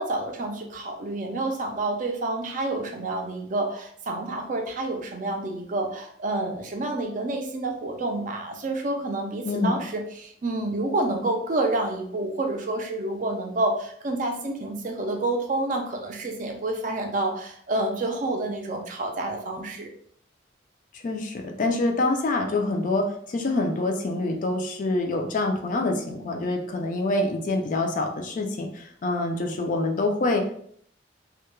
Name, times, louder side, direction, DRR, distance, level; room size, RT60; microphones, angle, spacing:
voice 1, 0.0-19.9, right 2 dB, 45° right, 3 dB, 0.4 m, -28 dB
voice 2, 9.4-9.8 20.9-30.6, left 2 dB, 45° left, 3 dB, 0.4 m, -26 dB
2.2 x 2.1 x 3.0 m, 0.63 s
head